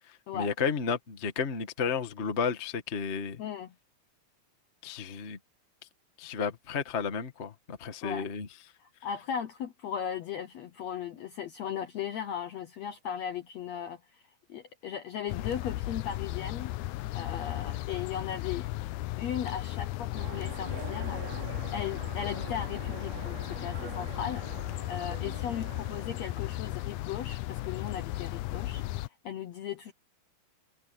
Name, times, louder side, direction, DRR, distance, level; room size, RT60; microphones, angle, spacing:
voice 1, 0.1-3.4 4.8-5.4 6.2-8.5, left 6 dB, 40° left, 0.9 m, -32 dB
voice 2, 3.4-3.8 8.0-8.3 8.8-14.2 14.5-16.7 17.1-18.7 19.2-28.8 29.2-29.9, left 8 dB, 70° left, 1.7 m, -37 dB
sound 1, 15.3-29.1, left 17 dB, 90° left, 1.7 m, -35 dB
Train, 20.2-27.1, right 8 dB, 90° right, 4.6 m, -45 dB
omnidirectional pair, 4.2 m